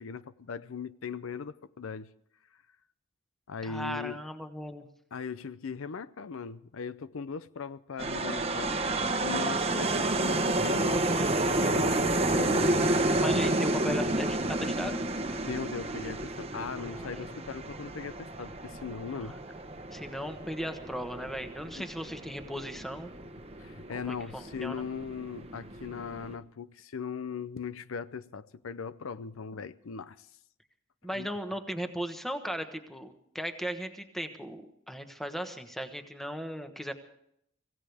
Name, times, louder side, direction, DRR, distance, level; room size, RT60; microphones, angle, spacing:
voice 1, 0.0-2.1 3.5-4.2 5.1-8.7 9.2-12.8 15.4-19.3 21.8-21.9 23.6-30.3 31.1-31.3, left 5 dB, 80° left, 0.6 m, -39 dB
voice 2, 3.6-4.9 13.1-15.0 16.8-17.2 19.2-19.4 19.9-23.1 23.9-24.8 31.0-36.9, equal, ahead, 1.2 m, -37 dB
sound 1, 8.0-26.3, right 2 dB, 30° right, 1.1 m, -30 dB
25.0 x 16.0 x 3.5 m
head